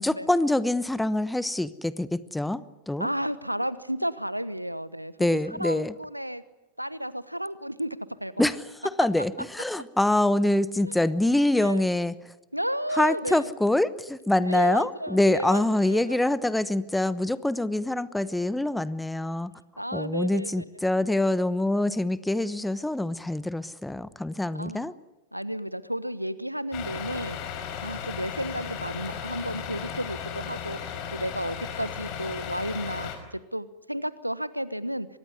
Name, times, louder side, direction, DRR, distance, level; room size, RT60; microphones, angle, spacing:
voice 1, 0.0-3.1 5.2-5.9 8.4-12.2 12.9-19.5 19.9-24.9, left 1 dB, 5° left, 16 dB, 1.1 m, -25 dB
voice 2, 3.0-6.4 6.8-8.3 10.8-11.0 11.6-11.8 12.5-13.5 14.5-16.2 19.8-20.5 24.5-25.0 25.3-27.4 27.8-35.1, equal, 90° right, 17 dB, 1.1 m, -32 dB
Truck, 26.7-33.2, left 8 dB, 40° left, 4.9 m, -35 dB
24.5 x 21.0 x 9.6 m, 1.0 s
figure-of-eight pair, 90°, 0 cm